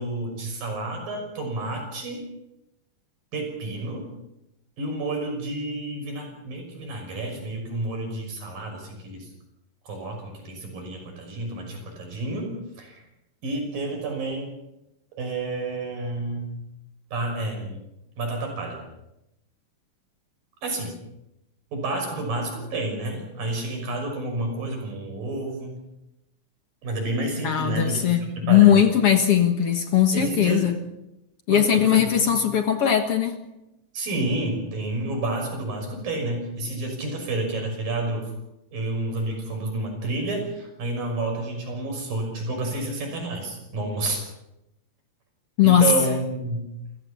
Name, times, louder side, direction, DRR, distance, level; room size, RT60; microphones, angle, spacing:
voice 1, 0.0-2.3 3.3-4.1 4.8-9.3 9.9-13.0 13.4-14.6 15.2-16.5 17.1-17.8 18.2-18.8 20.6-21.0 21.7-25.8 26.8-28.9 30.1-30.7 31.5-32.2 33.9-38.3 38.7-44.2 45.6-46.7, right 2 dB, 90° right, 2 dB, 7.7 m, -30 dB
voice 2, 27.4-30.8 31.5-33.4 45.6-45.9, left 9 dB, 55° left, 7 dB, 1.9 m, -19 dB
28.5 x 15.5 x 7.0 m, 0.90 s
omnidirectional pair, 3.9 m